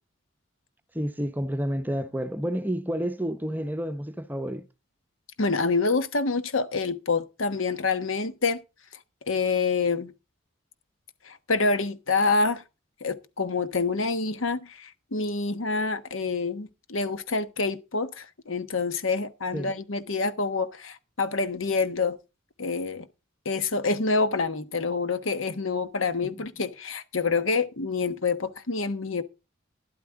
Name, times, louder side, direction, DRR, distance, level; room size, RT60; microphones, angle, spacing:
voice 1, 0.9-4.6 19.5-19.7 26.2-26.3, equal, 10° right, 0.7 m, -30 dB
voice 2, 5.4-8.6 9.3-10.1 11.3-12.6 13.0-22.2 22.6-23.1 23.4-29.2, left 4 dB, 85° left, 1.2 m, -27 dB
12.5 x 11.5 x 3.6 m
head